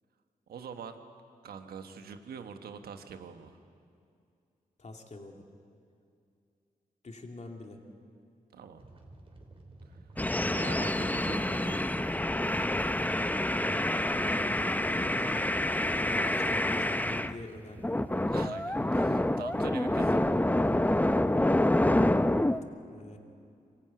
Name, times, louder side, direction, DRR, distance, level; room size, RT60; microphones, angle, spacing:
voice 1, 0.5-1.0 1.4-3.6 8.5-8.8 10.5-11.9 18.3-20.4, right 6 dB, 90° right, 7 dB, 1.4 m, -44 dB
voice 2, 4.8-5.4 7.0-7.8 14.4-15.6 16.0-18.0 22.9-23.2, left 2 dB, 50° left, 2 dB, 2.8 m, -45 dB
sound 1, 8.8-21.4, right 2 dB, 35° right, 4.0 m, -51 dB
sound 2, 10.2-17.4 17.8-22.6, left 1 dB, 10° left, 0.8 m, -27 dB
24.5 x 15.5 x 9.3 m, 2.4 s
cardioid pair, 50°, 15 cm